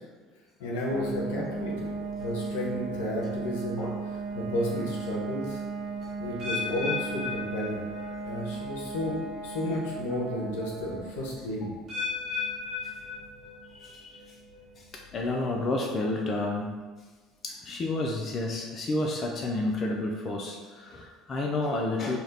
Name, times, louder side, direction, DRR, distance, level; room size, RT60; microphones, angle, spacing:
voice 1, 0.6-1.9 2.2-3.9 4.3-5.6 6.2-7.8 8.2-11.7, left 1 dB, 85° left, -3 dB, 0.7 m, -32 dB
some kind of plane.lawnmower, 0.9-15.5, right 4 dB, 65° right, 0.5 m, -37 dB
sound 1, 6.4-8.4 8.7-9.1 9.8-9.9 11.9-13.8 14.2-14.6 15.2-15.3, left 5 dB, 45° right, 1.2 m, -35 dB
voice 2, 13.6-14.4 14.8-16.7 17.4-22.2, left 2 dB, 40° left, 0 dB, 0.4 m, -31 dB
2.8 x 2.3 x 3.3 m, 1.4 s
supercardioid pair, 85°, 0 cm